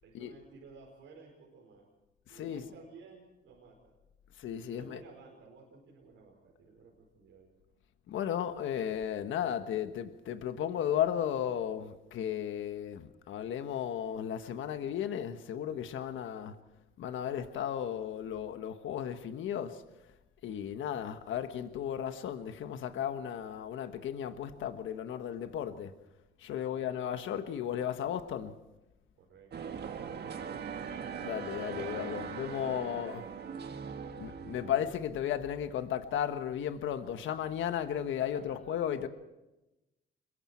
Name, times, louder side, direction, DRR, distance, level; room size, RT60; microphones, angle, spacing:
voice 1, 0.0-1.9 2.3-3.9 4.7-7.5 26.5-27.4 29.2-30.8 32.7-33.4 38.3-39.1, right 4 dB, 85° right, 5.0 m, -56 dB
voice 2, 2.3-2.6 4.4-5.0 8.1-16.5 17.0-19.8 20.4-25.9 26.4-28.5 31.2-33.2 34.2-39.1, left 9 dB, 80° left, 1.5 m, -35 dB
sound 1, 29.5-34.9, right 7 dB, 55° right, 1.6 m, -40 dB
26.5 x 22.0 x 4.6 m
cardioid pair, 90°, 20 cm